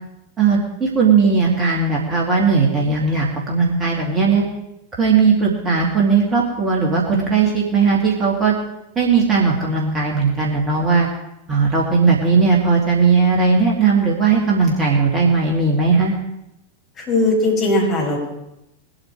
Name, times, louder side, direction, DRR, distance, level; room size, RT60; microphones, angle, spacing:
voice 1, 0.4-4.4 5.0-8.5 9.0-11.1 11.5-16.1, right 5 dB, 20° right, -3 dB, 2.5 m, -17 dB
voice 2, 17.0-18.3, left 2 dB, 30° left, -1 dB, 5.6 m, -19 dB
20.0 x 8.9 x 4.8 m, 0.86 s
figure-of-eight pair, 90°, 0 cm